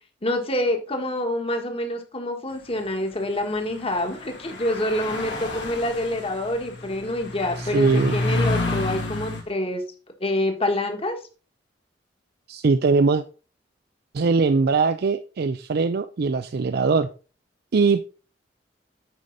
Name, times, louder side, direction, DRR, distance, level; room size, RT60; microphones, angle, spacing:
voice 1, 0.2-9.8 10.2-11.2, left 1 dB, 30° left, 5 dB, 1.5 m, -26 dB
sound 1, 3.7-3.8 4.3-9.4, left 2 dB, 75° left, 2.6 m, -29 dB
voice 2, 7.6-8.2 12.5-13.2 14.1-17.1 17.7-18.0, right 4 dB, 60° right, 11 dB, 0.4 m, -21 dB
9.2 x 5.1 x 3.9 m, 0.35 s
head